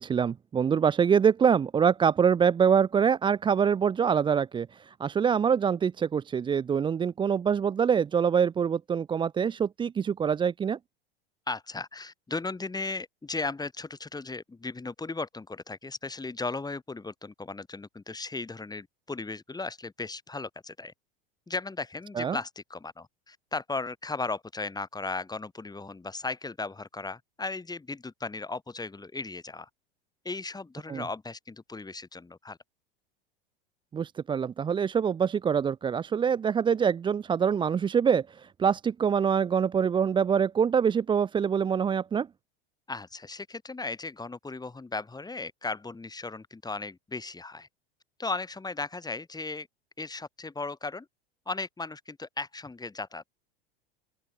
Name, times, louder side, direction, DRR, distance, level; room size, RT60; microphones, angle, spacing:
voice 1, 0.0-10.8 22.2-22.4 30.9-31.0 33.9-42.3, right 7 dB, 15° right, 0.5 m, -25 dB
voice 2, 11.5-20.9 21.5-29.7 30.2-32.6 42.9-47.7 48.2-49.7 50.0-51.1 51.5-53.2, left 3 dB, 15° left, 7.1 m, -36 dB
open air
hypercardioid pair, 90°, 30 cm